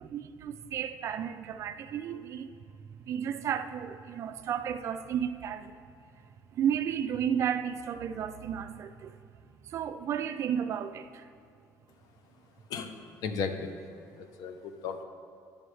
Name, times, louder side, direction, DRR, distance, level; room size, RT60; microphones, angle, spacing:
voice 1, 0.0-2.5 2.8-5.8 6.5-9.1 9.6-11.3, right 8 dB, 45° right, 0.4 m, -33 dB
voice 2, 12.7-13.7 14.2-15.0, left 5 dB, 65° left, 0.7 m, -35 dB
11.0 x 6.9 x 3.2 m
cardioid pair, 145°, 7 cm